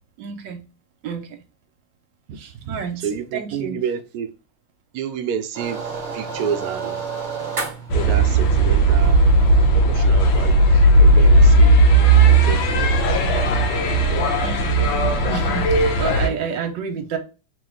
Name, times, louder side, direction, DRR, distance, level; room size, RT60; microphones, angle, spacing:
voice 1, 0.2-0.6 1.0-1.3 2.3-3.8 14.4-15.0 15.3-17.2, right 6 dB, 70° right, 1.2 m, -30 dB
voice 2, 2.3-4.3 4.9-7.0 7.9-9.2 9.7-11.8 12.5-13.2 13.7-13.9 14.2-14.4 16.3-16.5, right 7 dB, 90° right, 0.8 m, -30 dB
sound 1, 5.5-11.2, right 5 dB, 35° right, 1.3 m, -32 dB
sound 2, 7.9-16.3, right 2 dB, 75° left, 1.5 m, -15 dB
3.5 x 3.0 x 3.8 m
omnidirectional pair, 2.4 m